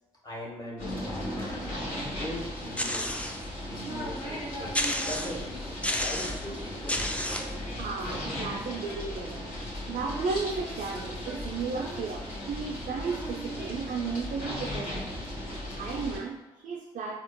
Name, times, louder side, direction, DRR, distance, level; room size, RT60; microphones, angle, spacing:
voice 1, 0.2-1.6 2.1-3.2 3.6-4.8 5.0-7.0, equal, 25° left, -3 dB, 1.2 m, -40 dB
sound 1, 0.8-16.2, left 1 dB, 65° left, 1.3 m, -36 dB
sound 2, 2.8-3.5 4.0-4.1 4.7-5.5 5.8-6.4 6.9-7.5, left 1 dB, 10° left, 0.4 m, -31 dB
voice 2, 7.8-9.4 9.9-15.3 15.7-17.1, right 5 dB, 60° right, 0 dB, 0.4 m, -34 dB
4.3 x 2.3 x 2.3 m, 1.1 s
hypercardioid pair, 40°, 15 cm